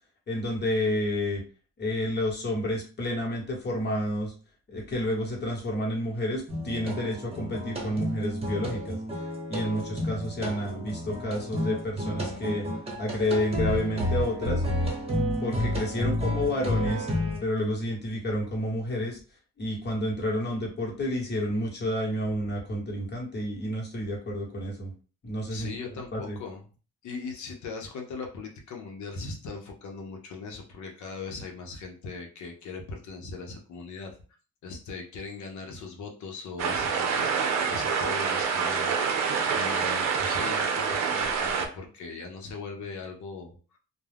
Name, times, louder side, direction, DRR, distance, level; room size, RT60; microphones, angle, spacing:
voice 1, 0.3-1.4 1.8-4.3 4.7-9.0 9.5-12.6 13.0-14.6 15.4-17.1 17.4-19.2 19.6-24.9 25.2-26.4, left 1 dB, 35° left, -1 dB, 1.1 m, -30 dB
sound 1, 6.5-17.4, left 1 dB, 20° right, 1.0 m, -30 dB
voice 2, 25.5-26.6 27.0-34.2 34.6-37.3 37.7-38.9 39.5-43.6, left 4 dB, 75° left, 2 dB, 0.8 m, -39 dB
sound 2, 36.6-41.7, right 6 dB, 65° right, 0.6 m, -27 dB
2.3 x 2.2 x 3.3 m, 0.37 s
cardioid pair, 90°, 30 cm